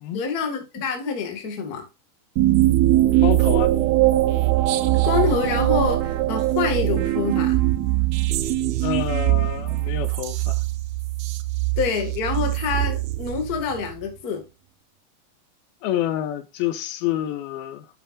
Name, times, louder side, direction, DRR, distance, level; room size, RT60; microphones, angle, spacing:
voice 1, 0.1-1.8 5.0-7.6 11.8-14.4, left 6 dB, 35° left, 1.7 m, -26 dB
sound 1, 2.4-13.9, right 16 dB, 90° right, 2.6 m, -21 dB
voice 2, 3.2-3.7 8.8-10.6 15.8-17.9, left 12 dB, 85° left, 2.7 m, -28 dB
9.3 x 8.2 x 2.5 m
omnidirectional pair, 4.3 m